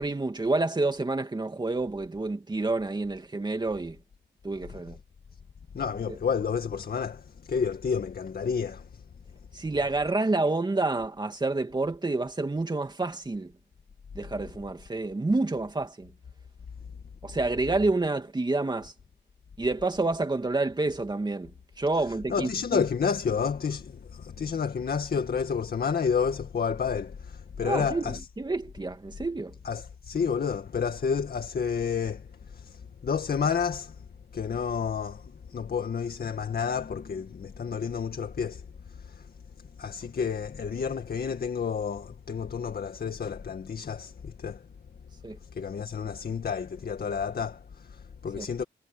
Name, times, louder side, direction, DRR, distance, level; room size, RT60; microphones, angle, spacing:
voice 1, 0.0-4.0 4.4-5.0 6.1-6.2 9.5-13.5 14.1-16.1 17.2-18.9 19.6-22.8 27.6-29.5 45.2-45.4 48.4-48.5, right 2 dB, 20° right, 2.6 m, -28 dB
voice 2, 5.7-9.0 22.3-28.2 29.6-34.0 34.3-38.6 38.9-39.3 39.8-44.6 45.5-48.6, left 6 dB, 55° left, 2.0 m, -30 dB
wide cardioid pair, 125°, 19 cm